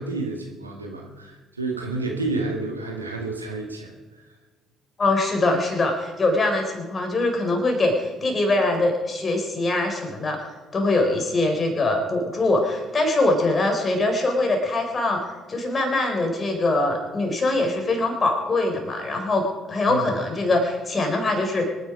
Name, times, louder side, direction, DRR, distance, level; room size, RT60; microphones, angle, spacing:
voice 1, 0.0-3.9 19.9-20.1, right 3 dB, 90° right, 1 dB, 1.9 m, -30 dB
voice 2, 5.0-10.4 10.7-19.4 19.7-21.7, left 2 dB, 35° left, 3 dB, 4.5 m, -23 dB
25.5 x 10.0 x 5.1 m, 1.3 s
figure-of-eight pair, 50°, 0 cm